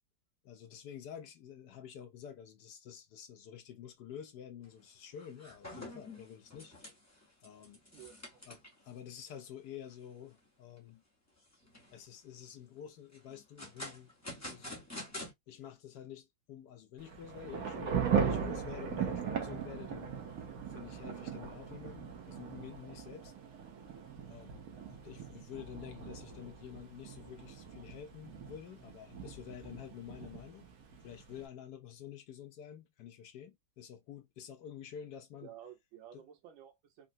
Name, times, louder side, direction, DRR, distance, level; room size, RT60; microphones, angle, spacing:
voice 1, 0.4-6.7 7.4-7.8 8.5-11.0 11.9-14.1 14.5-14.9 15.5-20.2 20.7-23.3 24.3-30.7 31.0-35.5 36.1-36.2, left 9 dB, 70° left, 1.1 m, -49 dB
sound 1, 4.6-4.8 5.1-8.9 9.3-9.4 9.9-10.0 10.5-10.9 11.4-12.1 13.1-15.3, left 1 dB, 20° left, 0.5 m, -47 dB
voice 2, 7.9-8.4 35.4-37.1, right 10 dB, 90° right, 1.7 m, -53 dB
Thunder / Rain, 17.0-31.4, right 7 dB, 60° right, 1.0 m, -39 dB
3.8 x 2.1 x 2.5 m
omnidirectional pair, 2.1 m